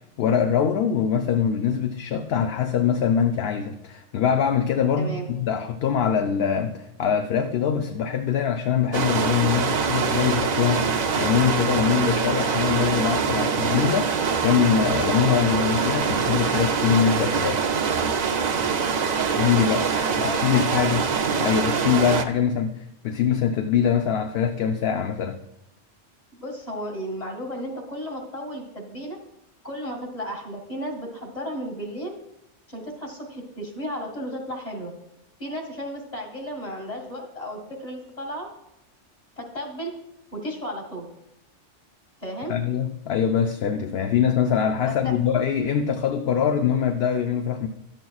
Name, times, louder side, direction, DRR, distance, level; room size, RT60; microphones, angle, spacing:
voice 1, 0.2-17.6 19.3-19.8 20.4-21.0 21.4-25.4 42.5-47.7, left 8 dB, 65° left, 6 dB, 0.7 m, -23 dB
voice 2, 5.0-5.3 19.8-21.0 26.4-29.2 29.6-32.1 32.7-34.9 35.4-38.5 39.4-39.9 40.3-41.1 42.2-42.5 44.9-45.1, equal, 35° left, -1 dB, 2.0 m, -34 dB
sound 1, 8.9-22.2, right 6 dB, 50° right, 0.5 m, -24 dB
12.0 x 7.7 x 2.3 m, 0.85 s
omnidirectional pair, 1.2 m